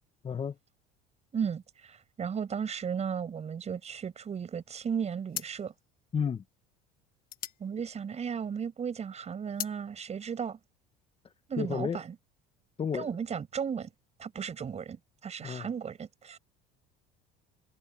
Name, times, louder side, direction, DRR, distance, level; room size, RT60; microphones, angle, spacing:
voice 1, 0.2-0.5 6.1-6.4 11.6-12.0 12.8-13.1 15.4-15.7, left 7 dB, 30° left, 1.3 m, -31 dB
voice 2, 1.3-5.7 7.6-10.6 11.5-12.2 12.9-13.9 14.2-16.4, right 7 dB, 35° right, 5.8 m, -35 dB
sound 1, 4.6-4.9 5.3-8.7 9.0-9.8, left 11 dB, 50° left, 1.4 m, -41 dB
supercardioid pair, 105°, 20 cm